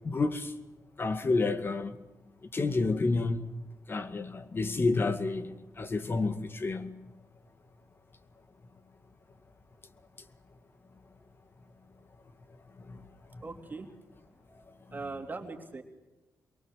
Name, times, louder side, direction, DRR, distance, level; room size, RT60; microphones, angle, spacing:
voice 1, 0.0-0.5 1.0-2.0 2.5-3.5 3.9-7.0 12.9-13.0 13.3-13.4, left 3 dB, 40° left, 2.1 m, -30 dB
voice 2, 13.4-13.9 14.9-15.8, right 3 dB, 30° right, 3.3 m, -40 dB
24.5 x 22.5 x 7.6 m
cardioid pair, 90°, 6 cm